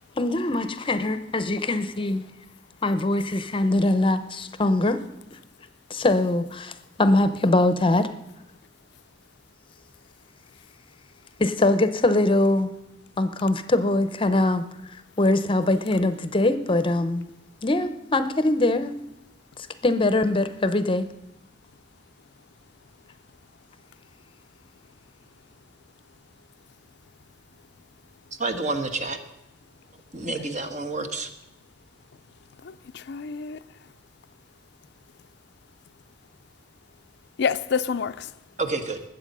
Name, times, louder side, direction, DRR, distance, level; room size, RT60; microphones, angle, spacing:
voice 1, 0.2-2.2 2.8-5.0 5.3-5.4 5.9-8.1 11.4-12.7 13.2-14.7 15.2-17.3 17.6-19.0 19.8-21.1, left 2 dB, 30° left, 0.7 m, -22 dB
voice 2, 28.4-29.2 30.1-31.3 38.6-39.0, right 3 dB, 40° right, 1.2 m, -29 dB
voice 3, 32.6-33.6 37.4-38.3, left 6 dB, 65° left, 0.5 m, -28 dB
20.0 x 7.9 x 5.4 m
head